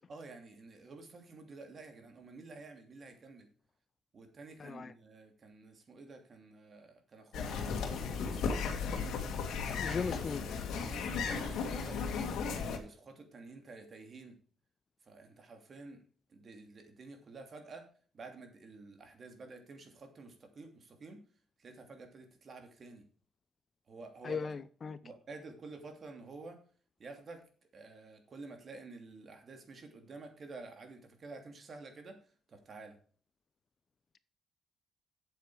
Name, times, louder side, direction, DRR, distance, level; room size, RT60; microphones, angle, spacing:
voice 1, 0.1-3.5 4.1-8.7 9.7-12.1 12.7-14.4 15.1-16.0 16.3-17.9 18.1-21.2 21.6-23.1 23.9-24.5 25.0-26.6 27.0-27.4 27.7-32.2 32.5-33.0, right 3 dB, 45° right, 2.8 m, -50 dB
voice 2, 4.6-4.9 9.8-10.4 24.2-25.0, left 5 dB, 40° left, 0.6 m, -37 dB
sound 1, 7.3-12.8, left 5 dB, 75° left, 1.9 m, -35 dB
8.3 x 7.9 x 4.8 m
cardioid pair, 90°, 0 cm